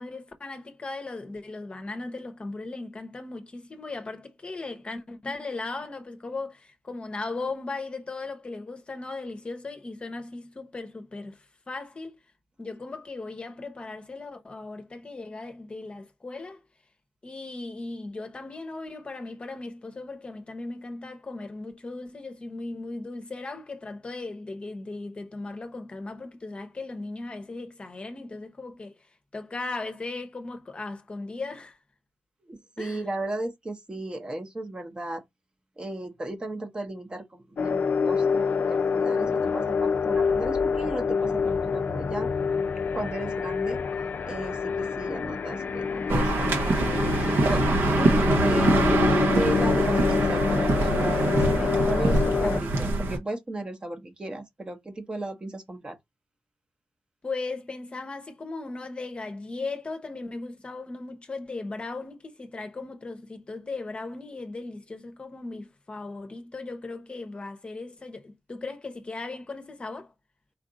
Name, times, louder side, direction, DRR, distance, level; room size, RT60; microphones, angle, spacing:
voice 1, 0.0-12.2 12.6-16.6 17.2-29.1 29.3-31.8 32.8-33.0 57.2-70.1, left 3 dB, 30° left, 0.8 m, -37 dB
voice 2, 32.5-35.2 35.8-42.3 42.9-43.8 44.2-47.6 48.0-48.7 49.2-56.0, right 1 dB, 25° right, 0.8 m, -35 dB
sound 1, 37.6-52.6, left 5 dB, 55° left, 0.4 m, -26 dB
sound 2, 46.1-53.2, right 2 dB, 80° right, 0.9 m, -24 dB
4.5 x 2.5 x 3.8 m
wide cardioid pair, 160°, 4 cm